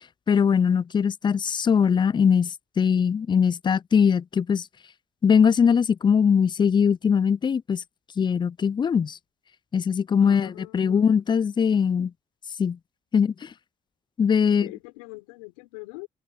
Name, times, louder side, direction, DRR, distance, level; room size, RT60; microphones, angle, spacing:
voice 1, 0.3-4.6 5.2-7.8 8.2-9.2 9.7-12.1 12.6-12.8 13.1-13.5 14.2-14.7, left 7 dB, 25° left, 0.4 m, -21 dB
voice 2, 10.2-11.0 14.6-16.1, left 26 dB, 85° left, 6.2 m, -42 dB
hypercardioid pair, 55°, 17 cm